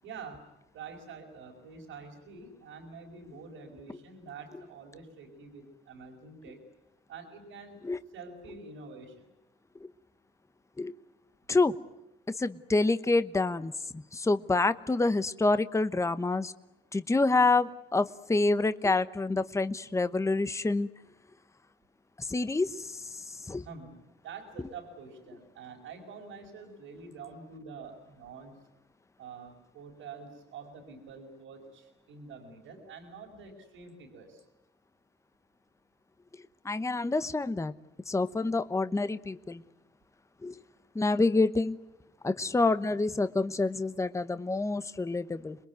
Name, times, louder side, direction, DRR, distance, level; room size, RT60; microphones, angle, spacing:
voice 1, 0.0-6.7 7.1-7.8 8.1-9.2 23.6-28.6 29.2-34.4, right 5 dB, 90° right, -2 dB, 5.0 m, -47 dB
voice 2, 12.4-16.5 16.9-20.9 22.2-23.6 36.6-37.7 38.1-39.6 40.4-40.6 40.9-41.8 42.2-45.6, left 3 dB, 15° left, 13 dB, 1.0 m, -27 dB
27.0 x 21.5 x 9.4 m, 0.93 s
cardioid pair, 90°, 20 cm